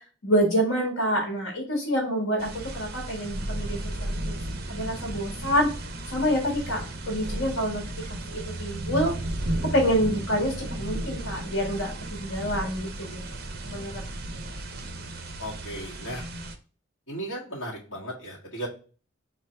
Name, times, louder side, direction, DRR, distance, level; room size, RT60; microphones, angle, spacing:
voice 1, 0.2-4.4 4.7-5.7 6.1-9.1 9.6-13.2 13.6-14.0 14.3-14.6, equal, 85° left, 0 dB, 1.7 m, -27 dB
sound 1, 2.4-16.5, right 1 dB, 50° right, 0.7 m, -34 dB
voice 2, 15.4-16.3 17.1-18.7, right 1 dB, 65° left, -5 dB, 1.7 m, -36 dB
4.7 x 3.0 x 3.3 m, 0.36 s
head